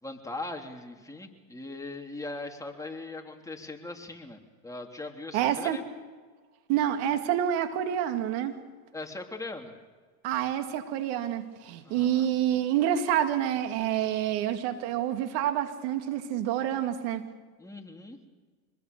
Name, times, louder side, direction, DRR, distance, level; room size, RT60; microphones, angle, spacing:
voice 1, 0.0-5.8 8.9-9.7 11.8-12.3 17.6-18.2, left 2 dB, 5° left, 2 dB, 3.1 m, -40 dB
voice 2, 5.3-5.8 6.7-8.5 10.2-17.2, right 10 dB, 70° right, 7 dB, 2.4 m, -28 dB
25.5 x 21.0 x 6.8 m, 1.5 s
supercardioid pair, 95°, 43 cm